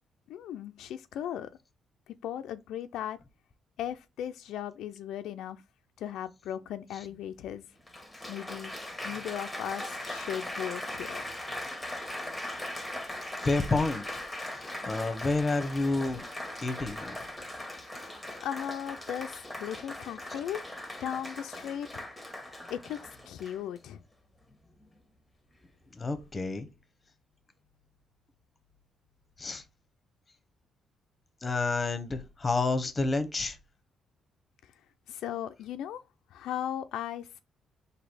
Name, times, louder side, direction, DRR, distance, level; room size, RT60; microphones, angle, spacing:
voice 1, 0.3-1.5 2.2-3.2 3.8-5.6 6.0-7.7 8.3-8.7 9.0-11.2 17.9-20.6 21.0-22.0 22.7-24.0 35.1-36.0 36.3-37.4, left 10 dB, 80° left, 0.3 m, -37 dB
Applause, 7.1-7.2 7.9-23.8 24.5-24.8, left 1 dB, 5° left, 1.2 m, -40 dB
voice 2, 13.4-14.0 14.6-16.2 16.6-17.2 26.0-26.7 29.4-29.6 31.4-33.6, left 3 dB, 25° left, 0.8 m, -29 dB
4.0 x 2.8 x 4.6 m
cardioid pair, 90°, 0 cm